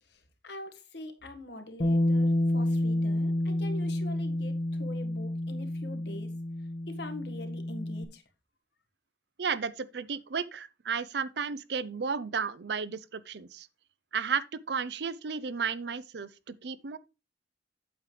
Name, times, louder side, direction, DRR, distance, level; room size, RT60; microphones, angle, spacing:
voice 1, 0.0-6.3 6.9-8.2, left 1 dB, 75° left, 1.7 m, -44 dB
Bass guitar, 1.8-8.1, left 1 dB, 45° left, 1.0 m, -29 dB
voice 2, 9.4-13.7 14.1-17.0, right 6 dB, 75° right, 0.6 m, -33 dB
8.7 x 7.3 x 3.3 m
head